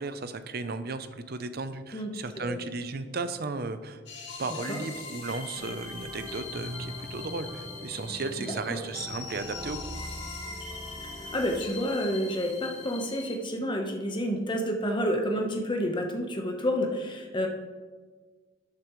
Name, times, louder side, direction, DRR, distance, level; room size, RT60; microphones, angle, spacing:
voice 1, 0.0-4.0 4.4-9.8, right 3 dB, 55° right, 10 dB, 0.6 m, -35 dB
sound 1, 4.1-13.4, left 4 dB, 65° left, 2.9 m, -42 dB
sound 2, 5.6-11.7, equal, 20° right, 1.1 m, -42 dB
voice 2, 11.3-17.5, equal, 25° left, 2 dB, 1.1 m, -29 dB
12.5 x 8.4 x 3.2 m, 1.5 s
head